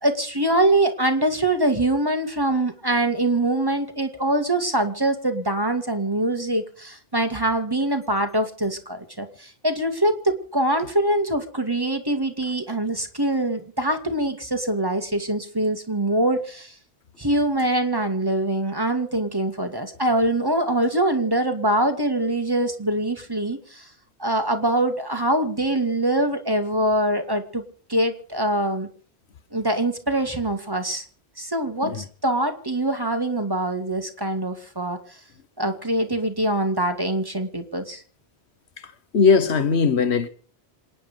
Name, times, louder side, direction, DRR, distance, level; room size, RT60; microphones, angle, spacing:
voice 1, 0.0-16.7 17.2-23.9 24.2-27.6 27.9-28.9 29.5-31.0 31.4-35.0 35.6-38.0, right 1 dB, 20° right, 2.0 m, -23 dB
voice 2, 38.8-40.3, left 5 dB, 90° left, 1.5 m, -20 dB
27.0 x 10.0 x 5.2 m
omnidirectional pair, 1.1 m